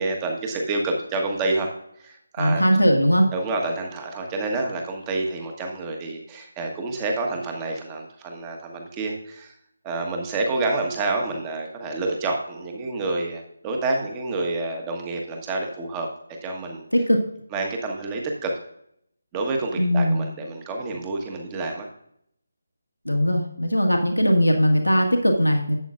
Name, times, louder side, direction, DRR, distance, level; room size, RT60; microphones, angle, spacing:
voice 1, 0.0-1.7 2.0-2.6 3.3-9.5 9.8-16.1 16.4-16.8 17.5-18.5 19.3-21.9, right 2 dB, 15° right, 2 dB, 1.3 m, -28 dB
voice 2, 2.4-3.3 16.9-17.2 19.8-20.3 23.0-25.8, equal, 85° left, 2 dB, 1.6 m, -19 dB
11.5 x 8.3 x 2.5 m, 0.72 s
figure-of-eight pair, 155°, 0 cm